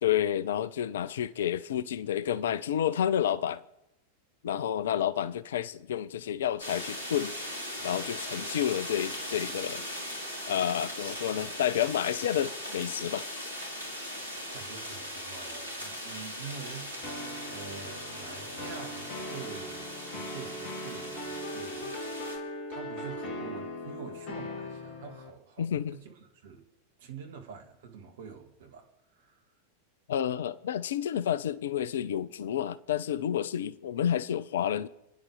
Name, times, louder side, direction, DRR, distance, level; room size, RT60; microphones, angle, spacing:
voice 1, 0.0-3.6 4.4-7.3 7.8-9.8 10.5-13.5 25.6-26.0 30.1-34.9, left 10 dB, 60° left, 0.6 m, -30 dB
sound 1, 6.6-22.4, equal, 85° right, 4.1 m, -39 dB
voice 2, 13.9-17.2 17.5-22.1 22.7-26.6 27.0-29.4, right 6 dB, 55° right, 2.4 m, -46 dB
sound 2, 17.0-25.3, left 1 dB, 40° left, 2.5 m, -40 dB
29.5 x 10.5 x 3.6 m
figure-of-eight pair, 90°, 0 cm